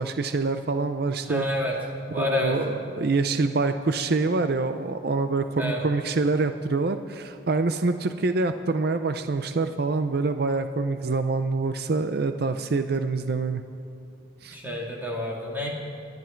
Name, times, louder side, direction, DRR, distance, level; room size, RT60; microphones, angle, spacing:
voice 1, 0.0-1.5 2.1-13.6 14.4-14.6, right 3 dB, 50° right, 9 dB, 0.5 m, -26 dB
voice 2, 1.3-1.7 2.1-2.6 5.6-5.8 14.5-15.7, left 1 dB, 10° right, -3 dB, 2.5 m, -28 dB
28.5 x 11.0 x 4.5 m, 2.7 s
head